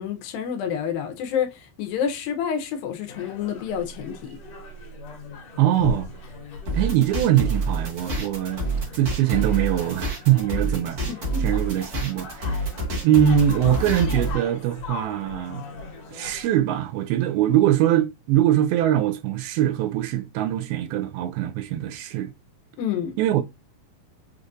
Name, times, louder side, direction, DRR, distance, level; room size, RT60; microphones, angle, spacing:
voice 1, 0.0-4.4 11.1-11.5 22.8-23.2, left 8 dB, 80° left, 2.3 m, -29 dB
sound 1, 3.1-16.5, left 4 dB, 55° left, 1.8 m, -39 dB
voice 2, 5.6-6.1 6.7-8.6 9.0-11.0 11.4-12.6 13.0-15.6 16.1-22.3 23.2-23.4, right 12 dB, 85° right, 2.4 m, -22 dB
sound 2, 6.7-14.3, right 2 dB, 65° right, 1.1 m, -27 dB
6.4 x 2.4 x 2.5 m
omnidirectional pair, 4.4 m